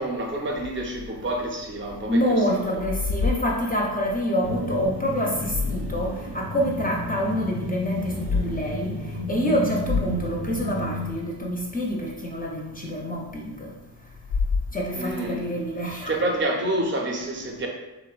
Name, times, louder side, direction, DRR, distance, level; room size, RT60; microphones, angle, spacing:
voice 1, 0.0-2.9 15.0-15.5 15.8-17.7, right 1 dB, 30° right, 1 dB, 0.5 m, -28 dB
sound 1, 0.5-2.2 2.5-4.2 5.1-6.2 6.7-6.8 8.0-8.5 8.9-9.0 9.5-9.6 9.8-11.1 14.1-15.2, left 4 dB, 75° left, 0.5 m, -30 dB
voice 2, 2.1-9.0 9.3-13.7 14.7-16.1, equal, 25° left, -2 dB, 0.5 m, -26 dB
sound 2, 4.4-11.2, left 1 dB, 90° right, 0.7 m, -32 dB
3.0 x 2.1 x 2.4 m, 1.1 s
cardioid pair, 55°, 39 cm